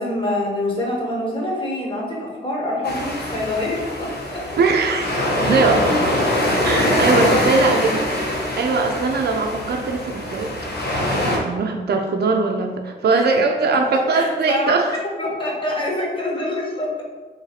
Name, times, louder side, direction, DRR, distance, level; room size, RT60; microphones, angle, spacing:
voice 1, 0.0-4.4 6.4-7.4 13.1-13.2 14.1-14.7 15.2-17.0, left 1 dB, 25° left, -4 dB, 1.4 m, -25 dB
sound 1, 2.8-11.4, left 1 dB, 55° left, 0.9 m, -23 dB
voice 2, 4.6-5.9 6.6-8.0 8.5-10.5 11.0-15.0, right 4 dB, 55° right, 3 dB, 0.5 m, -21 dB
3.2 x 2.6 x 4.1 m, 1.3 s
cardioid pair, 50°, 20 cm